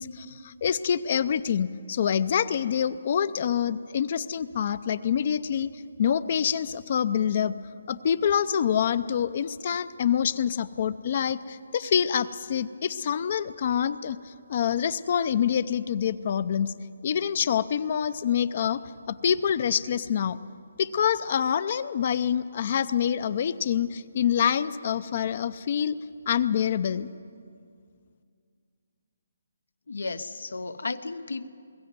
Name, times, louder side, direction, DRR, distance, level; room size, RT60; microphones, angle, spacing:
voice 1, 0.0-5.7 6.0-7.5 7.9-16.7 17.0-18.8 19.1-20.4 20.8-26.0 26.3-27.1, left 8 dB, 40° left, 14 dB, 0.5 m, -26 dB
voice 2, 29.9-31.5, left 3 dB, 85° left, 10 dB, 0.9 m, -34 dB
22.5 x 14.0 x 9.4 m, 2.2 s
hypercardioid pair, 165°, 0 cm